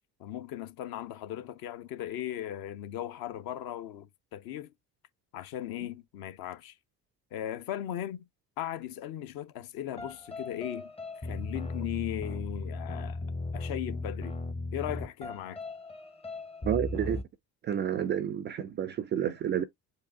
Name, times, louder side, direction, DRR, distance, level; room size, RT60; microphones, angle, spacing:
voice 1, 0.2-4.7 5.3-6.7 7.3-8.2 8.6-10.9 11.2-13.2 13.5-14.4 14.7-15.6, left 12 dB, 45° left, 0.8 m, -37 dB
sound 1, 10.0-17.2, left 2 dB, 10° left, 0.7 m, -37 dB
voice 2, 16.6-17.2 17.6-19.6, right 9 dB, 25° right, 0.4 m, -30 dB
4.8 x 2.6 x 3.7 m
figure-of-eight pair, 55°, 49 cm